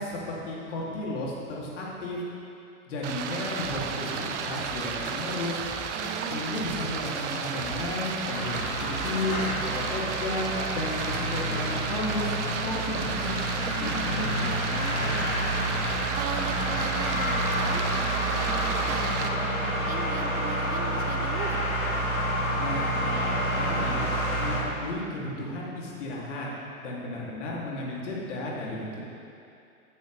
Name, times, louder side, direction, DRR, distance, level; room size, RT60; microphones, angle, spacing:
voice 1, 0.0-2.2 2.9-5.6 6.3-8.5 8.8-14.5 22.6-24.1 24.4-26.5 26.8-29.0, left 2 dB, 55° left, -4 dB, 3.1 m, -33 dB
Stream, 3.0-19.3, right 6 dB, 55° right, 1.0 m, -33 dB
Drum kit, 3.6-9.5, left 2 dB, 15° left, 1.2 m, -44 dB
voice 2, 5.9-6.4 14.7-21.6, right 7 dB, 20° right, 6 dB, 0.7 m, -39 dB
sound 1, 8.3-24.6, equal, 75° left, 2.8 m, -29 dB
14.5 x 12.0 x 3.5 m, 2.6 s
figure-of-eight pair, 105°, 43 cm